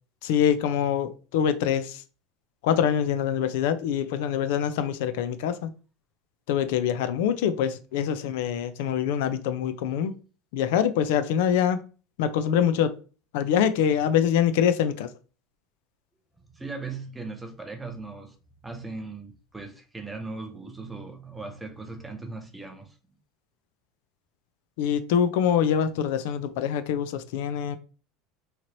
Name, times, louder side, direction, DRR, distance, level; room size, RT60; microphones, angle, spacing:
voice 1, 0.2-2.0 2.6-5.7 6.5-10.1 10.5-11.8 12.2-12.9 13.3-15.1 24.8-27.8, left 8 dB, 70° left, 0.3 m, -24 dB
voice 2, 16.5-18.4 18.6-23.2, right 3 dB, 5° right, 0.4 m, -38 dB
3.1 x 2.8 x 2.5 m
cardioid pair, 170°, 0 cm